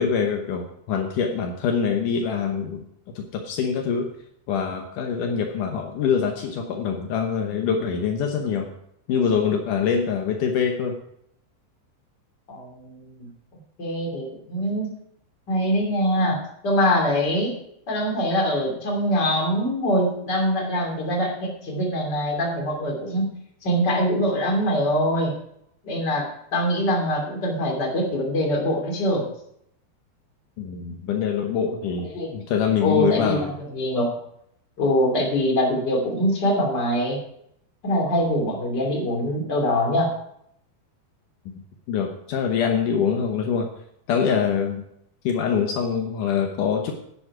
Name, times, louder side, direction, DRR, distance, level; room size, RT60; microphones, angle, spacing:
voice 1, 0.0-2.8 3.2-4.1 4.5-8.7 9.1-11.0 30.6-33.5 41.9-43.7 44.1-44.8 45.2-46.9, left 7 dB, 85° left, 3 dB, 1.8 m, -24 dB
voice 2, 12.5-13.3 13.8-14.9 15.5-17.5 17.9-23.3 23.6-25.3 25.8-29.2 32.1-32.3 32.8-33.5 33.7-34.1 34.8-37.2 37.8-40.1, equal, 30° left, -1 dB, 2.7 m, -23 dB
10.5 x 10.0 x 4.8 m, 0.73 s
omnidirectional pair, 5.2 m